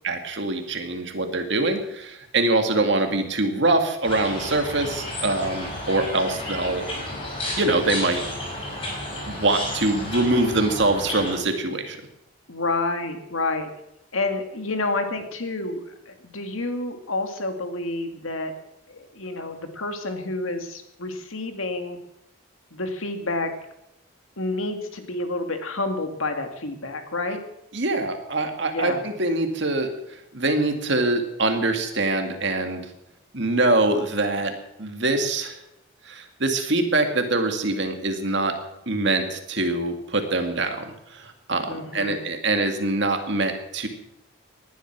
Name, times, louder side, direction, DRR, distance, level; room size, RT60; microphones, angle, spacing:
voice 1, 0.0-6.8 7.6-8.2 9.3-12.0 27.7-29.9 30.3-32.9 33.3-34.5 34.8-35.6 36.1-38.5 38.9-43.9, right 2 dB, 55° right, 5 dB, 2.2 m, -24 dB
sound 1, 4.0-11.3, left 1 dB, 25° left, 5.4 m, -32 dB
voice 2, 12.5-13.7 14.1-18.5 18.9-22.0 22.7-23.5 24.4-27.4 28.7-29.0 41.7-42.2, left 2 dB, 80° left, 6 dB, 2.3 m, -29 dB
19.0 x 11.0 x 6.1 m, 0.84 s
head